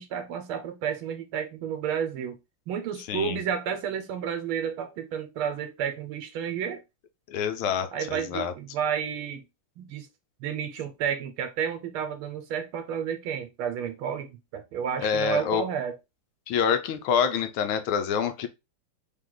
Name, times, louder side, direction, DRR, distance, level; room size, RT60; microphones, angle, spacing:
voice 1, 0.0-2.4 2.7-6.8 7.9-9.4 9.8-10.1 10.4-16.0, right 8 dB, 80° right, 1.5 m, -31 dB
voice 2, 7.3-8.5 15.0-15.7 16.5-18.5, left 7 dB, 80° left, 1.5 m, -26 dB
3.7 x 3.3 x 3.8 m
omnidirectional pair, 2.4 m